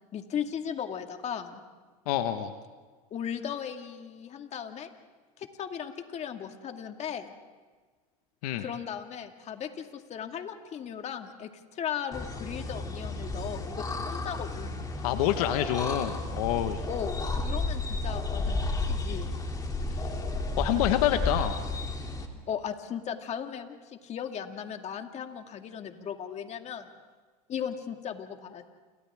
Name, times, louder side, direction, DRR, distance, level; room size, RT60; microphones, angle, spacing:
voice 1, 0.1-1.6 3.1-4.9 5.4-7.3 8.6-14.9 16.9-19.3 21.1-21.3 22.5-26.9 27.5-28.6, left 8 dB, 35° left, 5 dB, 2.0 m, -37 dB
voice 2, 2.1-2.5 8.4-8.6 15.0-16.8 20.6-21.6, left 12 dB, 70° left, 8 dB, 1.4 m, -27 dB
sound 1, 12.1-22.3, left 2 dB, 20° left, 2.7 m, -32 dB
30.0 x 28.5 x 3.6 m, 1.4 s
supercardioid pair, 105°, 20 cm